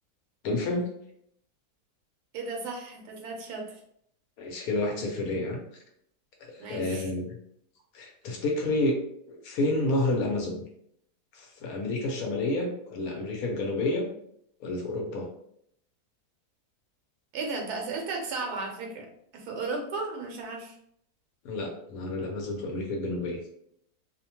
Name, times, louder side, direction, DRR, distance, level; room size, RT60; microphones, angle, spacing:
voice 1, 0.4-0.9 4.4-5.6 6.5-7.3 7.9-9.0 9.3-10.6 11.3-14.1 14.6-15.3 21.4-23.4, left 2 dB, 70° left, 1 dB, 1.0 m, -29 dB
voice 2, 2.3-3.8 6.6-7.1 17.3-20.8, right 3 dB, 80° right, 2 dB, 1.2 m, -35 dB
2.7 x 2.1 x 2.8 m, 0.71 s
omnidirectional pair, 1.7 m